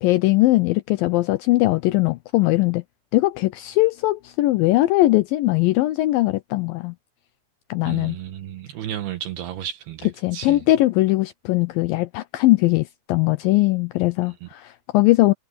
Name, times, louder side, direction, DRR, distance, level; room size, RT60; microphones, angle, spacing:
voice 1, 0.0-2.8 3.1-7.0 7.7-8.2 10.2-15.3, left 18 dB, 90° left, 2.0 m, -20 dB
voice 2, 7.8-10.6 14.2-14.5, right 11 dB, 75° right, 3.1 m, -33 dB
omnidirectional pair, 4.7 m